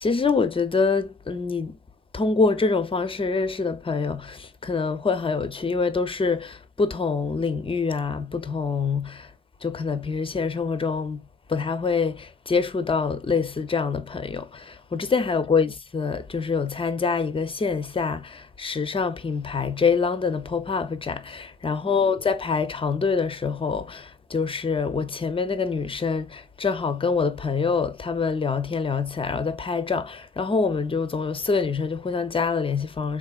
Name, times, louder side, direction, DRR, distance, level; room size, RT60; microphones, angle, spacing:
voice 1, 0.0-1.8 2.1-9.3 9.6-11.2 11.5-33.2, left 4 dB, 15° left, 0.4 m, -25 dB
3.4 x 2.5 x 2.3 m
cardioid pair, 50°, 39 cm